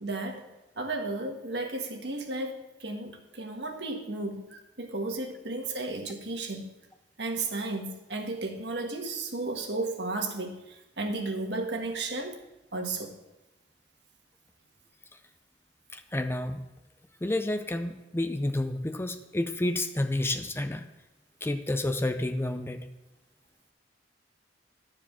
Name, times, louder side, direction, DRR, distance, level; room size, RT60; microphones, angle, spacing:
voice 1, 0.0-0.5 0.8-6.7 7.2-12.4 12.7-13.2, right 2 dB, 70° right, 3 dB, 1.6 m, -34 dB
voice 2, 15.9-16.7 17.2-20.9 21.4-22.9, left 1 dB, 15° left, 8 dB, 0.5 m, -30 dB
12.5 x 4.8 x 7.2 m, 1.0 s
head